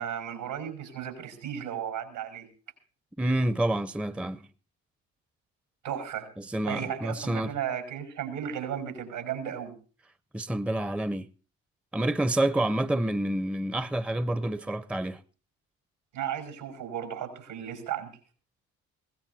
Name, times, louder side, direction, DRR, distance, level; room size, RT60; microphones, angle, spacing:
voice 1, 0.0-2.5 5.8-6.3 6.7-9.7 16.1-18.1, right 9 dB, 80° right, 5.5 m, -35 dB
voice 2, 3.2-4.4 6.4-7.5 10.3-11.3 11.9-15.2, right 1 dB, 5° right, 0.7 m, -28 dB
22.0 x 17.5 x 2.7 m
hypercardioid pair, 50°, 37 cm